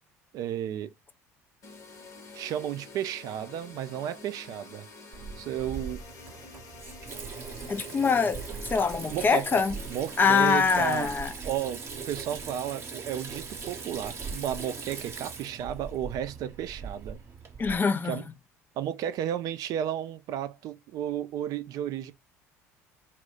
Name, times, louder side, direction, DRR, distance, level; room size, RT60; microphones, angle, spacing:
voice 1, 0.3-0.9 2.3-4.9 5.4-6.0 9.1-9.5 9.9-11.1 11.4-17.2 18.0-18.2 18.8-22.1, right 10 dB, 50° right, 0.4 m, -33 dB
sound 1, 1.6-11.2, left 2 dB, 45° left, 0.9 m, -47 dB
Water tap faucet / Sink (filling or washing), 5.1-17.8, right 5 dB, 30° right, 0.8 m, -40 dB
voice 2, 7.7-9.8 10.2-11.3 17.6-18.2, left 5 dB, 25° left, 0.4 m, -24 dB
2.3 x 2.1 x 3.6 m
figure-of-eight pair, 60°, 8 cm